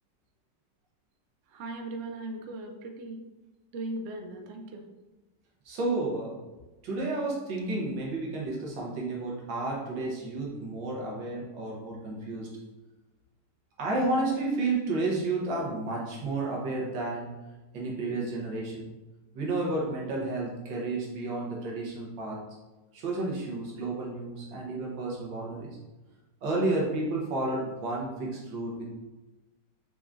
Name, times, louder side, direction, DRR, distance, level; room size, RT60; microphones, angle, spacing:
voice 1, 1.5-3.2 3.7-4.8, right 2 dB, 70° right, 3 dB, 0.7 m, -38 dB
voice 2, 5.7-6.4 6.8-12.5 13.8-17.3 17.7-18.9 19.3-22.4 22.9-25.8 26.4-28.8, right 2 dB, 90° right, -3 dB, 1.7 m, -31 dB
5.8 x 3.5 x 2.5 m, 1.1 s
omnidirectional pair, 2.0 m